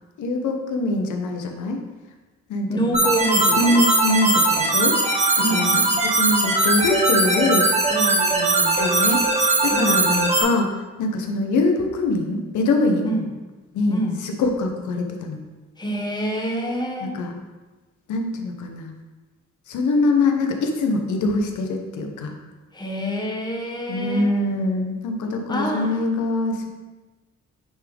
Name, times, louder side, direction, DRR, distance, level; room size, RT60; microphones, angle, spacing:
voice 1, 0.2-1.8 2.5-3.0 3.5-5.7 6.0-7.7 8.8-13.1 13.7-15.4 17.0-17.3 18.1-18.9 19.7-22.4 23.9-26.7, left 2 dB, 75° left, 3 dB, 1.1 m, -23 dB
voice 2, 2.7-3.8 5.4-5.9 7.9-8.8 9.7-10.0 13.0-13.3 13.9-14.2 15.8-17.2 22.7-24.3 25.5-26.0, equal, 15° left, 0 dB, 1.3 m, -27 dB
sound 1, 2.9-10.4, right 2 dB, 20° right, 1.4 m, -20 dB
9.2 x 3.8 x 3.5 m, 1.2 s
cardioid pair, 90°, 30 cm